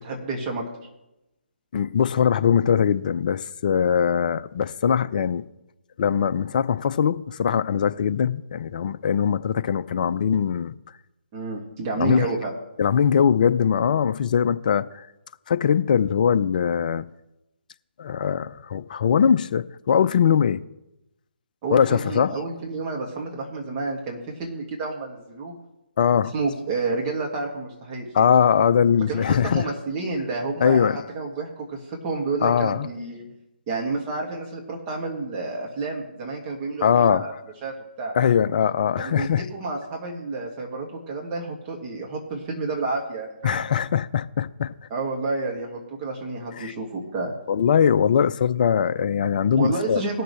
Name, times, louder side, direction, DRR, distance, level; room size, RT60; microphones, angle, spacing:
voice 1, 0.0-0.6 11.3-12.5 21.6-25.5 26.3-28.1 29.1-30.9 31.1-33.3 33.7-37.3 37.6-38.1 39.0-43.6 44.9-47.3 49.6-50.2, right 3 dB, 25° right, 2.1 m, -30 dB
voice 2, 1.7-5.5 6.0-10.7 12.0-12.4 12.8-15.1 15.5-17.1 18.0-20.6 21.7-22.4 26.0-26.3 28.1-29.7 30.6-31.0 32.4-32.9 36.8-37.3 38.1-39.5 43.4-44.7 46.6-46.7 47.5-50.0, left 7 dB, 45° left, 0.5 m, -21 dB
19.0 x 6.6 x 3.3 m
figure-of-eight pair, 145°, 6 cm